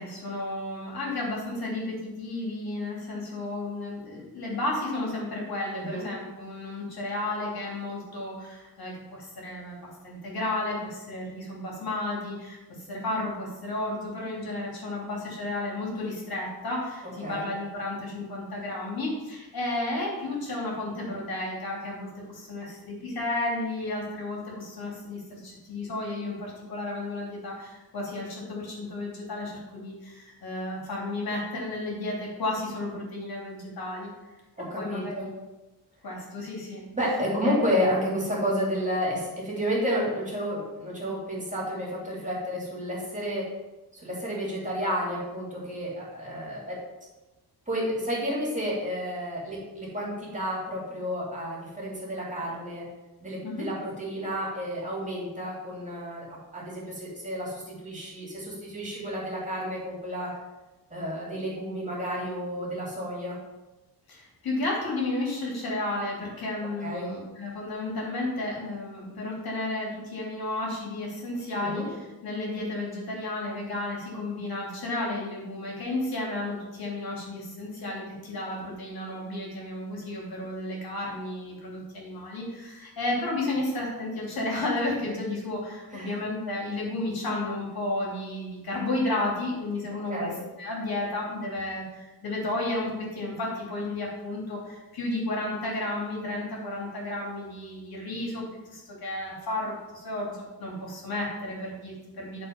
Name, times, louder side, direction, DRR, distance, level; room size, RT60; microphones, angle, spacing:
voice 1, 0.0-34.1 34.8-35.3 36.0-36.8 37.4-37.7 53.4-53.7 64.1-72.0 72.2-90.3 90.6-102.5, left 2 dB, 65° left, -3 dB, 3.0 m, -32 dB
voice 2, 5.7-6.1 17.2-17.5 34.6-35.3 36.9-43.5 43.9-46.8 47.7-52.9 53.2-56.3 56.5-60.3 60.9-63.4 66.8-67.1 71.6-71.9 85.9-86.2 90.1-90.4, equal, 20° right, -5 dB, 2.6 m, -31 dB
9.8 x 4.5 x 5.3 m, 1.1 s
wide cardioid pair, 145°, 38 cm